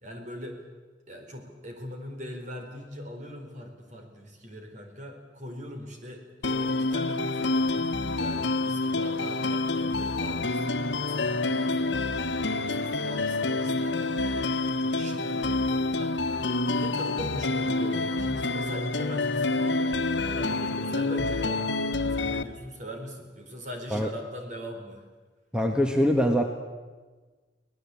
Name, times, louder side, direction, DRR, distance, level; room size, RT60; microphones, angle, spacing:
voice 1, 0.0-0.6 1.1-14.5 14.8-19.8 20.2-21.7 22.1-25.0, equal, 45° right, 3 dB, 4.3 m, -41 dB
sound 1, 6.4-22.4, left 2 dB, 75° left, 1.2 m, -27 dB
voice 2, 25.5-26.4, equal, 5° right, 4 dB, 1.4 m, -23 dB
24.5 x 18.5 x 8.5 m, 1.3 s
head